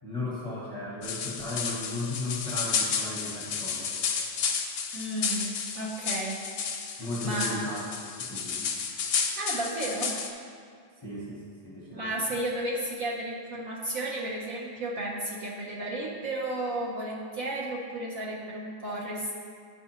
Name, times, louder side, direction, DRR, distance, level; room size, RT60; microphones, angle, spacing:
voice 1, 0.0-3.9 7.0-7.8 8.2-8.7 11.0-12.2, left 2 dB, 25° left, -5 dB, 0.8 m, -35 dB
sound 1, 1.0-10.3, left 6 dB, 75° left, 1.2 m, -32 dB
voice 2, 4.9-6.4 7.2-7.7 9.4-10.2 11.9-19.3, right 1 dB, 60° right, -4 dB, 1.0 m, -33 dB
10.5 x 4.7 x 2.9 m, 2.2 s
omnidirectional pair, 2.0 m